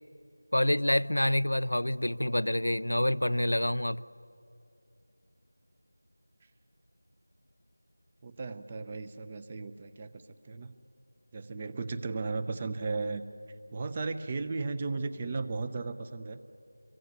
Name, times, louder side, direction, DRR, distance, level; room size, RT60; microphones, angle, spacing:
voice 1, 0.5-4.0, left 1 dB, 85° left, 16 dB, 0.6 m, -27 dB
voice 2, 8.2-10.8 11.3-13.2 13.7-16.4, right 3 dB, 20° right, 12 dB, 0.7 m, -35 dB
27.0 x 23.5 x 9.4 m, 2.7 s
figure-of-eight pair, 170°, 0 cm